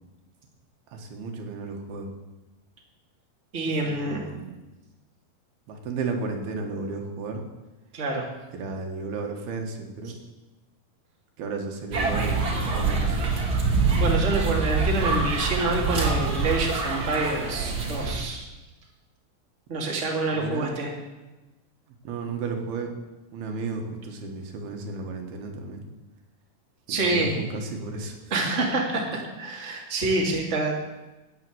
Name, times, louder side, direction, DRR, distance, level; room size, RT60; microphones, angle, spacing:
voice 1, 0.9-2.1 3.6-4.5 5.7-7.4 8.6-10.2 11.4-13.3 20.3-20.7 22.1-22.9 23.3-25.8 26.9-28.2 28.9-29.2, right 3 dB, 80° right, 3 dB, 3.5 m, -33 dB
voice 2, 3.5-4.2 7.9-8.3 14.0-18.5 19.7-20.9 26.9-27.4 28.3-29.0 29.4-30.8, right 2 dB, 20° right, -1 dB, 2.2 m, -27 dB
sound 1, 11.9-18.2, right 4 dB, 40° right, 2.4 m, -25 dB
13.0 x 9.2 x 7.9 m, 1.1 s
omnidirectional pair, 4.4 m